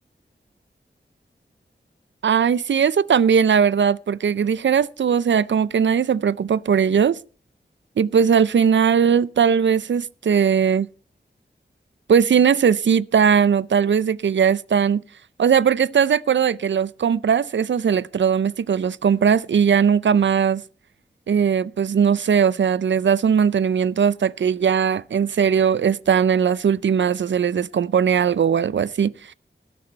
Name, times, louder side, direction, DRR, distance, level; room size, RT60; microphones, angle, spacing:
voice 1, 2.2-7.2 8.0-10.9 12.1-15.0 15.4-20.6 21.3-29.3, right 7 dB, 85° right, 0.5 m, -19 dB
20.0 x 6.8 x 4.4 m
wide cardioid pair, 85°, 19 cm